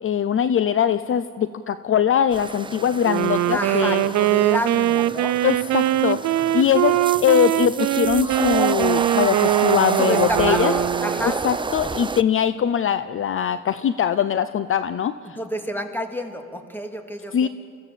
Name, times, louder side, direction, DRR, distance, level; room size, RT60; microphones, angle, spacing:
voice 1, 0.0-4.1 5.4-10.7 11.2-15.4 17.3-17.5, left 9 dB, 45° left, 13 dB, 0.6 m, -22 dB
sound 1, 2.3-12.2, right 4 dB, 15° right, 0.5 m, -29 dB
Wind instrument woodwind instrument, 3.0-11.4, right 14 dB, 65° right, 0.5 m, -22 dB
voice 2, 3.5-5.4 10.0-11.4 15.4-17.5, equal, 5° left, 5 dB, 2.3 m, -29 dB
25.5 x 15.0 x 7.5 m, 2.3 s
cardioid pair, 90°, 30 cm